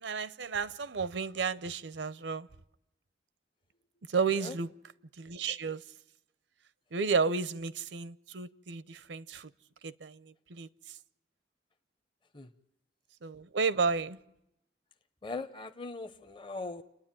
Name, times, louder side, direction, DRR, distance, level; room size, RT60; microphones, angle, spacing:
voice 1, 0.0-2.5 4.1-4.7 5.2-5.8 6.9-9.5 9.8-10.7 13.2-14.2, right 5 dB, 85° right, 0.7 m, -32 dB
voice 2, 15.2-16.8, left 3 dB, 30° left, 0.8 m, -40 dB
29.5 x 10.0 x 8.9 m
head